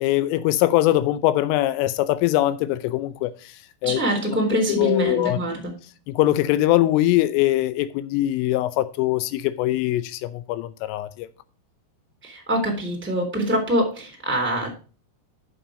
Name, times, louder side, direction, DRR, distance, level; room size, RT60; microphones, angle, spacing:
voice 1, 0.0-3.5 3.8-4.0 4.3-4.4 4.7-5.4 6.1-11.3, left 15 dB, 85° left, 3.1 m, -22 dB
voice 2, 3.8-5.7 12.2-14.7, right 1 dB, 5° right, 2.0 m, -24 dB
8.5 x 7.2 x 4.9 m
omnidirectional pair, 5.9 m